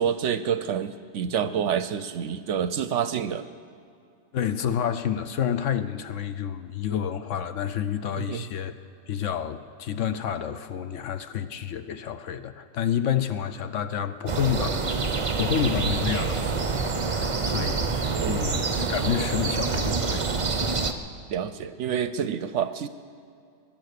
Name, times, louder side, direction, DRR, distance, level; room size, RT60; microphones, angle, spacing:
voice 1, 0.0-3.4 8.2-8.4 18.1-18.5 21.3-22.9, right 8 dB, 65° right, 12 dB, 0.8 m, -28 dB
voice 2, 4.3-8.7 9.1-20.4, left 9 dB, 65° left, 11 dB, 0.9 m, -29 dB
sound 1, 14.3-20.9, right 4 dB, 35° right, 0.5 m, -26 dB
21.0 x 10.5 x 6.6 m, 2.4 s
omnidirectional pair, 1.5 m